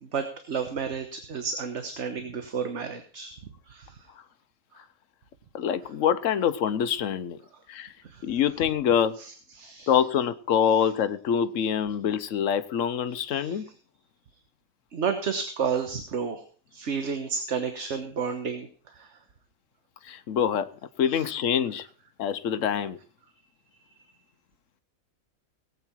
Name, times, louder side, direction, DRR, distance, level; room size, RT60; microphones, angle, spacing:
voice 1, 0.0-3.4 3.7-4.0 8.0-8.2 9.2-10.0 13.3-13.6 14.9-16.4 16.7-19.1 21.1-21.3 23.9-24.0, right 6 dB, 55° right, 1.4 m, -32 dB
voice 2, 5.5-7.4 7.7-7.9 8.2-9.2 9.9-13.7 20.0-20.7 21.0-21.9 22.2-23.0, left 8 dB, 65° left, 1.1 m, -25 dB
18.5 x 8.3 x 4.5 m
omnidirectional pair, 1.5 m